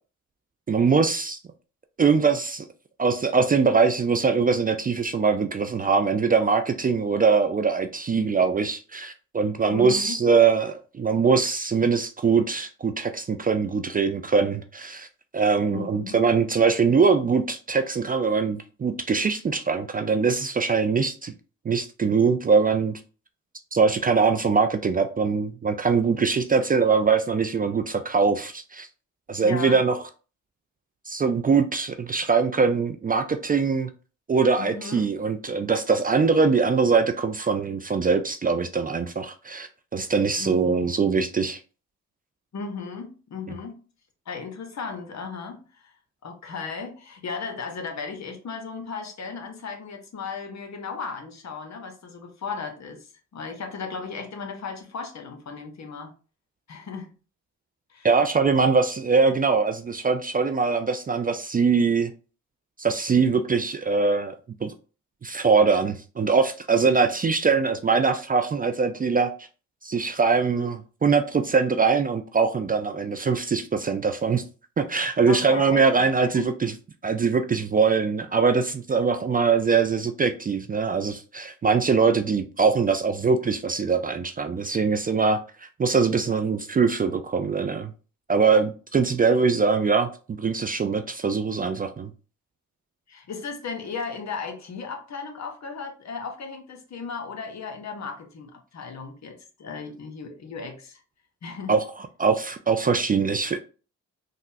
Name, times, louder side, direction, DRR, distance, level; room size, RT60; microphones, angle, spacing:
voice 1, 0.7-1.4 2.0-2.7 3.0-15.1 15.3-21.3 21.7-23.0 23.7-28.9 29.3-29.9 31.1-33.9 34.3-41.6 58.0-62.1 62.8-64.4 64.6-64.7 65.2-69.3 69.8-74.4 74.8-76.7 77.0-87.9 88.3-90.1 90.4-92.1 101.7-101.8 102.2-103.6, right 5 dB, 30° right, 0.3 m, -22 dB
voice 2, 9.7-10.2 15.7-16.2 29.4-29.8 34.6-35.1 40.4-41.0 42.5-43.8 44.3-45.9 46.2-56.1 56.7-57.1 57.9-58.1 75.3-76.5 93.1-101.0 101.4-101.7, left 5 dB, 55° left, 0.9 m, -36 dB
3.8 x 2.1 x 2.6 m
supercardioid pair, 50°, 32 cm